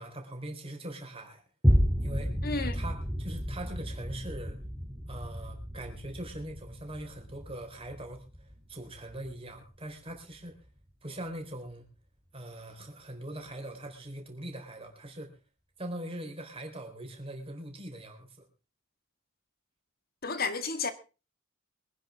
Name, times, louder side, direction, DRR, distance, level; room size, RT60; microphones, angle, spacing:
voice 1, 0.0-1.4 2.0-2.4 2.7-4.6 5.1-10.6 11.0-11.9 12.3-15.4 15.8-18.4, right 1 dB, 25° right, 4.0 m, -42 dB
sound 1, 1.6-10.2 10.7-10.8, equal, 5° right, 3.1 m, -31 dB
voice 2, 2.4-2.8 20.2-20.9, left 4 dB, 45° left, 1.8 m, -31 dB
24.0 x 10.5 x 3.6 m
head